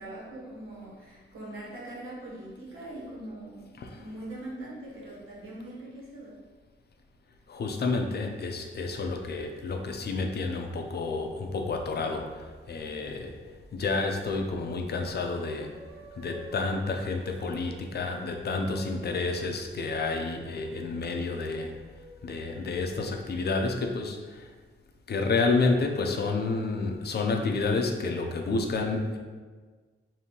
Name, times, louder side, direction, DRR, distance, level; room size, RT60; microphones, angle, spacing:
voice 1, 0.0-3.7 3.9-6.4, right 1 dB, 80° right, -6 dB, 1.4 m, -42 dB
voice 2, 7.5-13.4 13.7-15.8 16.1-21.7 22.2-24.5 25.1-29.2, left 3 dB, 50° left, 3 dB, 0.5 m, -30 dB
sound 1, 14.7-22.9, right 1 dB, 5° right, 1.0 m, -51 dB
5.1 x 2.7 x 2.9 m, 1.4 s
wide cardioid pair, 125°, 21 cm